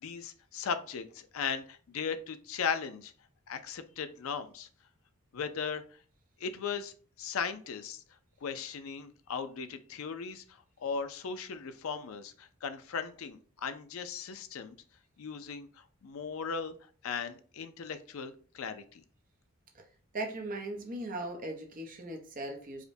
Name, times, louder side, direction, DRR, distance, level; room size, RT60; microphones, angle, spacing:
voice 1, 0.0-3.1 3.5-4.7 5.3-5.8 6.4-8.0 8.4-10.4 10.8-14.8 15.2-16.7 17.0-19.0, left 6 dB, 70° left, 10 dB, 0.4 m, -37 dB
voice 2, 20.1-22.8, right 2 dB, 40° right, 2 dB, 0.7 m, -38 dB
4.9 x 2.2 x 2.6 m, 0.41 s
head